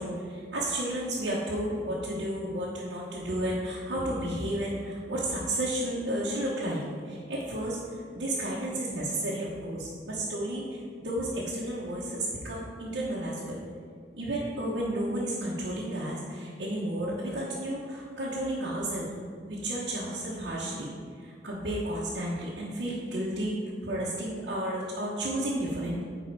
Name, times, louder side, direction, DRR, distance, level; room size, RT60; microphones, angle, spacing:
voice 1, 0.0-13.6 14.1-19.1 19.4-20.9 21.2-26.0, right 1 dB, 80° right, -7 dB, 1.1 m, -32 dB
9.3 x 4.0 x 4.7 m, 2.1 s
head